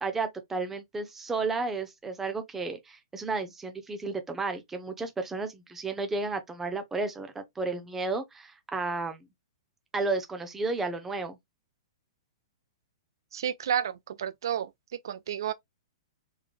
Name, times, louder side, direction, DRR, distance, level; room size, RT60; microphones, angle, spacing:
voice 1, 0.0-9.3 9.9-11.4, right 3 dB, 10° right, 0.9 m, -32 dB
voice 2, 13.3-14.7 15.0-15.5, right 9 dB, 60° right, 0.3 m, -31 dB
3.7 x 3.2 x 2.4 m
figure-of-eight pair, 110°, 2 cm